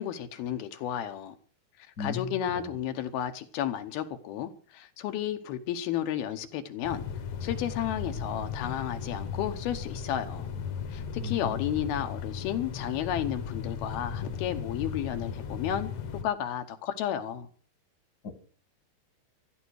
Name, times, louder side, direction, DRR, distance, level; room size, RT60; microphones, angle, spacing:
voice 1, 0.0-1.3 2.0-7.0 7.4-10.5 10.9-15.9 16.2-17.5, left 10 dB, 75° left, 2.9 m, -32 dB
voice 2, 2.0-2.3 2.5-2.6 11.2-11.5 18.2-18.3, left 5 dB, 40° left, 1.6 m, -35 dB
sound 1, 6.8-16.2, left 6 dB, 60° left, 2.0 m, -36 dB
15.0 x 12.0 x 6.4 m
omnidirectional pair, 4.5 m